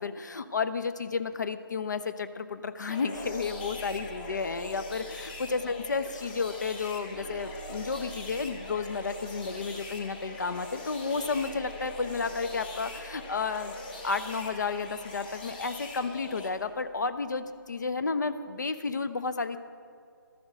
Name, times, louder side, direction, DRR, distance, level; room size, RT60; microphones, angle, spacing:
voice 1, 0.0-13.8 14.0-19.6, left 4 dB, 55° left, 12 dB, 0.7 m, -32 dB
sound 1, 2.9-16.5, left 3 dB, 25° left, 1.1 m, -42 dB
sound 2, 3.1-17.4, right 2 dB, ahead, 0.3 m, -48 dB
13.0 x 11.5 x 5.1 m, 2.3 s
figure-of-eight pair, 160°, 12 cm